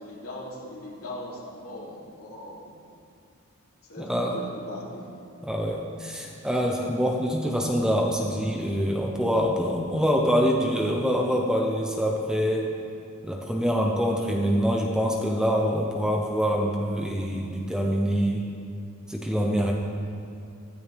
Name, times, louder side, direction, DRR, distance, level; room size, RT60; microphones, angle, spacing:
voice 1, 0.0-2.7 3.8-5.1 6.2-6.3, left 1 dB, 70° left, -5 dB, 3.2 m, -40 dB
voice 2, 4.0-4.4 5.4-12.7 13.2-18.4 19.1-19.7, equal, 5° right, -1 dB, 1.0 m, -25 dB
15.5 x 14.5 x 3.6 m, 2.5 s
head